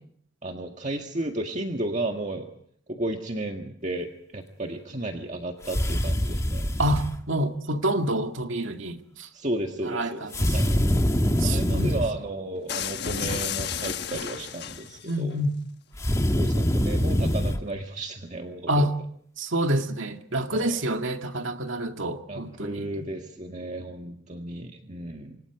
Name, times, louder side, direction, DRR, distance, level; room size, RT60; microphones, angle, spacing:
voice 1, 0.4-2.5 2.9-6.7 9.3-10.2 10.5-10.7 11.4-15.4 16.3-18.9 20.5-20.8 22.3-25.4, right 1 dB, 35° right, 1.8 m, -33 dB
sound 1, 5.6-7.2 10.3-12.1 15.9-17.6, equal, 15° left, 1.5 m, -24 dB
voice 2, 6.8-9.3 9.9-10.8 11.4-12.0 15.1-15.6 18.7-18.9 19.4-23.1, right 1 dB, 75° right, 2.1 m, -28 dB
sound 2, 12.7-15.1, left 7 dB, 55° left, 1.3 m, -32 dB
29.5 x 26.0 x 4.9 m
head